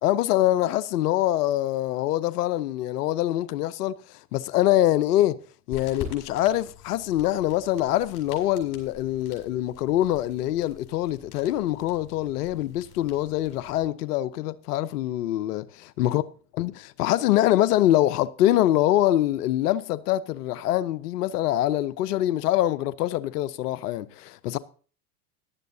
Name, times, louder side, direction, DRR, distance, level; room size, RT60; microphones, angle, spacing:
voice 1, 0.0-5.4 5.7-15.7 16.0-16.2 16.6-24.6, left 14 dB, 80° left, 0.8 m, -24 dB
sound 1, 5.7-13.9, left 7 dB, 45° left, 5.8 m, -45 dB
16.5 x 11.5 x 2.7 m
hypercardioid pair, 90°, 46 cm